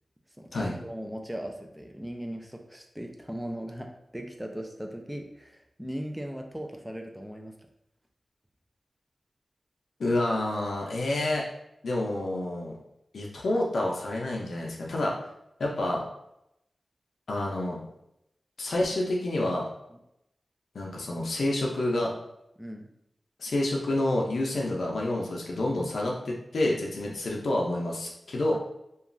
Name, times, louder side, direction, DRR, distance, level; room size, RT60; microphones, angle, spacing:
voice 1, 0.4-7.6 19.9-20.0 22.6-22.9 27.1-27.2 28.5-28.6, equal, 5° right, 3 dB, 0.4 m, -38 dB
voice 2, 10.0-11.4 11.8-12.7 13.1-15.1 15.6-16.0 17.3-17.8 18.6-19.7 20.7-22.1 23.4-28.6, left 1 dB, 85° left, -2 dB, 0.5 m, -28 dB
2.9 x 2.3 x 2.5 m, 0.82 s
wide cardioid pair, 65°, 0 cm